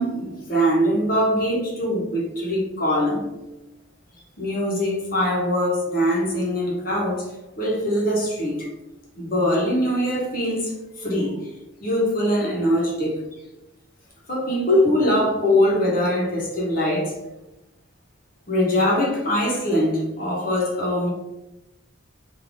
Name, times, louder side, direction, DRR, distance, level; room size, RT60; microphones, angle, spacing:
voice 1, 0.0-3.3 4.4-8.7 9.2-11.4 11.8-13.2 14.3-17.2 18.5-21.1, equal, 45° left, 1.1 m, -22 dB
3.8 x 2.8 x 3.5 m
head